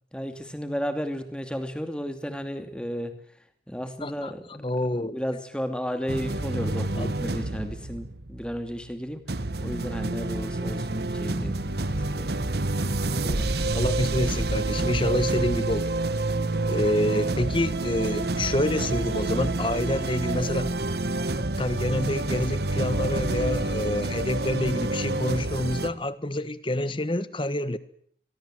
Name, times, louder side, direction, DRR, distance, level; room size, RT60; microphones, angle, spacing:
voice 1, 0.1-3.4 3.7-4.4 4.9-11.6 11.9-12.3, equal, 5° left, 7 dB, 2.6 m, -33 dB
voice 2, 4.6-5.2 7.0-7.1 13.2-15.9 16.7-20.8 21.6-27.8, left 1 dB, 30° left, 14 dB, 1.3 m, -27 dB
Cinematic Music - Relinquish, 6.1-8.9 9.3-25.9, right 2 dB, 60° right, 1.2 m, -28 dB
29.0 x 23.0 x 7.7 m, 0.64 s
head